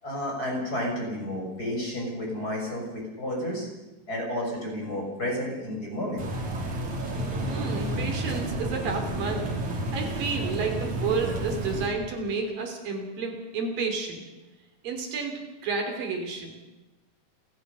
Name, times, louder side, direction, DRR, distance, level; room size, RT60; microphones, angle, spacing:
voice 1, 0.0-3.7 4.1-6.3, left 1 dB, 25° left, -1 dB, 6.9 m, -31 dB
sound 1, 6.2-11.9, right 1 dB, 55° right, 4.6 m, -31 dB
voice 2, 7.5-9.5 9.9-14.2 14.8-16.7, right 4 dB, 75° right, 3 dB, 4.8 m, -31 dB
29.5 x 13.0 x 6.8 m, 1.0 s
omnidirectional pair, 4.1 m